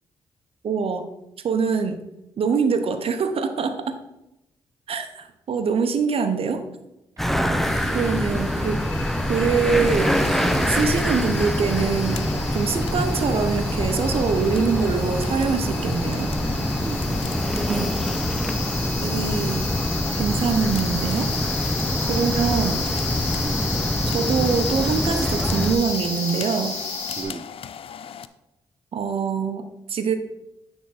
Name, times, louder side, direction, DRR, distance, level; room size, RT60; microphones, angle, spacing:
voice 1, 0.6-1.1 1.4-2.0 2.4-4.0 4.9-6.6 7.9-8.8 9.3-10.4 10.6-16.3 17.7-18.1 19.0-19.6 20.1-21.3 22.0-22.8 24.1-26.8 28.9-30.1, right 5 dB, 60° right, 8 dB, 0.8 m, -24 dB
sound 1, 7.2-25.8, equal, ahead, 0.8 m, -25 dB
sound 2, 7.6-27.2, left 3 dB, 80° left, 1.3 m, -33 dB
sound 3, 9.4-28.3, left 8 dB, 55° left, 0.4 m, -38 dB
voice 2, 16.8-17.2 18.6-18.7 23.4-23.7 27.2-27.5, right 4 dB, 30° right, 10 dB, 0.4 m, -37 dB
9.2 x 3.6 x 4.1 m, 0.91 s
hypercardioid pair, 40°, 11 cm